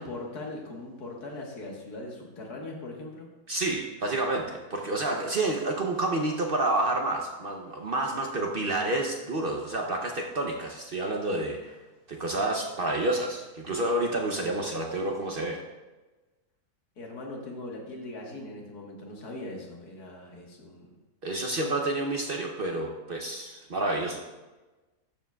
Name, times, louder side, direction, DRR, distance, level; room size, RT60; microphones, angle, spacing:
voice 1, 0.0-3.3 17.0-21.0 21.5-21.6, left 2 dB, 85° left, -1 dB, 2.0 m, -40 dB
voice 2, 3.5-11.8 12.1-15.6 21.2-24.2, right 2 dB, 45° right, 1 dB, 0.8 m, -29 dB
12.0 x 7.3 x 2.3 m, 1.2 s
omnidirectional pair, 1.6 m